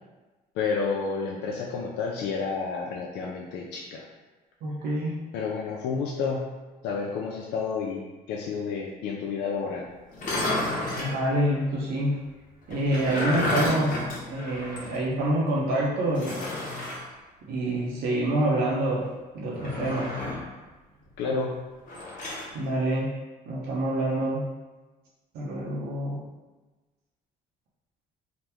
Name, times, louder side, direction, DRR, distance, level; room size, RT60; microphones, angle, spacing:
voice 1, 0.5-4.0 5.3-6.5 6.8-9.9 21.2-21.6, left 5 dB, 80° left, -2 dB, 0.4 m, -30 dB
voice 2, 4.6-5.2 11.0-12.2 12.7-16.5 17.5-19.1 19.3-20.1 22.5-23.1 23.5-24.5 25.3-26.2, right 1 dB, 70° right, -6 dB, 0.8 m, -27 dB
sound 1, 10.1-11.2 12.7-15.0 15.3-15.4 16.1-17.0 19.5-20.5 21.9-22.5, left 2 dB, 55° left, 0.9 m, -31 dB
2.9 x 2.1 x 3.4 m, 1.2 s
cardioid pair, 110°, 17 cm